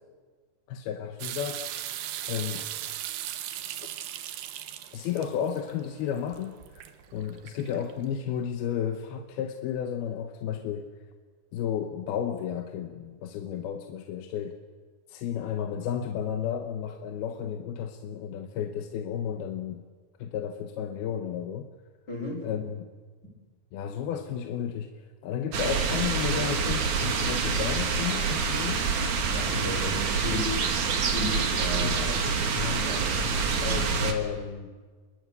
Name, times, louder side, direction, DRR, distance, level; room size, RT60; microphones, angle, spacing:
voice 1, 0.7-1.7 2.3-2.7 4.9-6.8 7.1-11.0 11.5-14.6 15.1-19.8 20.2-21.7 22.4-22.9 23.7-24.9 25.2-28.8 31.8-32.9 33.6-34.8, left 9 dB, 80° left, 5 dB, 3.0 m, -33 dB
sound 1, 1.2-8.0, right 12 dB, 85° right, 3.1 m, -38 dB
voice 2, 22.1-22.4 29.3-30.7 31.0-32.0 32.6-33.5, left 2 dB, 25° left, -1 dB, 5.4 m, -35 dB
sound 2, 25.5-34.1, right 5 dB, 55° right, 3.2 m, -27 dB
27.5 x 22.5 x 8.2 m, 1.5 s
omnidirectional pair, 4.4 m